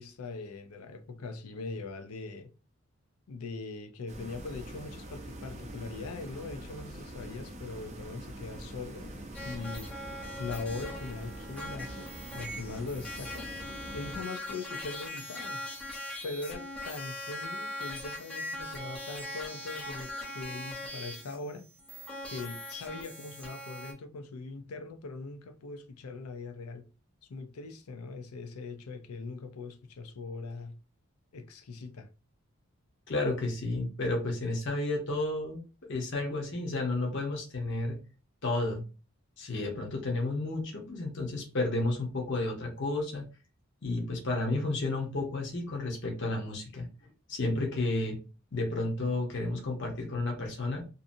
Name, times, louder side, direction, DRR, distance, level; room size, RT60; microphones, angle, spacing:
voice 1, 0.0-2.5 3.3-9.9 10.4-13.5 13.9-15.6 16.2-21.7 22.3-26.9 27.3-30.8 31.3-32.1, left 3 dB, 85° left, 0.5 m, -41 dB
sound 1, 4.1-14.2, right 1 dB, 30° right, 0.5 m, -44 dB
sound 2, 9.3-23.9, left 1 dB, 5° left, 0.7 m, -41 dB
voice 2, 33.1-35.6 35.9-38.0 38.4-38.8 39.4-43.3 43.8-46.9 47.3-48.2 48.5-50.8, left 2 dB, 55° left, 0.8 m, -31 dB
2.7 x 2.6 x 2.6 m
head